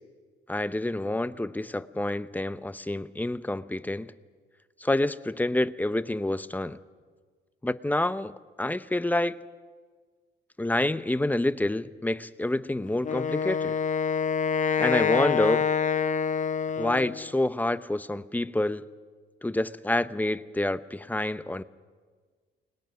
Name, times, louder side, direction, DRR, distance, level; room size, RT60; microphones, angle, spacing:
voice 1, 0.5-4.1 4.8-6.8 7.6-8.3 8.6-9.4 10.6-13.8 14.8-15.7 16.8-18.8 19.4-21.6, left 1 dB, 10° left, 0.8 m, -28 dB
Wind instrument woodwind instrument, 13.0-17.3, left 6 dB, 40° left, 0.7 m, -26 dB
29.5 x 21.0 x 6.2 m
cardioid pair, 90°, 20 cm